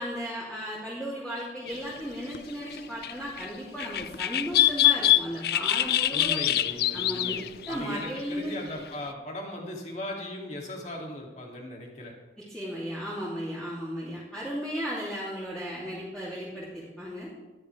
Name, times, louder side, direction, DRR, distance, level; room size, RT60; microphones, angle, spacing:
voice 1, 0.0-6.4 6.9-7.4 7.7-8.6 12.4-17.3, equal, 5° left, -9 dB, 3.1 m, -35 dB
sound 1, 1.7-2.0 2.3-2.4 2.7-3.5 3.8-8.2 8.5-8.7, left 13 dB, 60° left, 0.4 m, -25 dB
voice 2, 6.1-7.4 7.7-12.1, left 1 dB, 40° left, -1 dB, 2.9 m, -38 dB
19.5 x 13.5 x 3.5 m, 1.1 s
head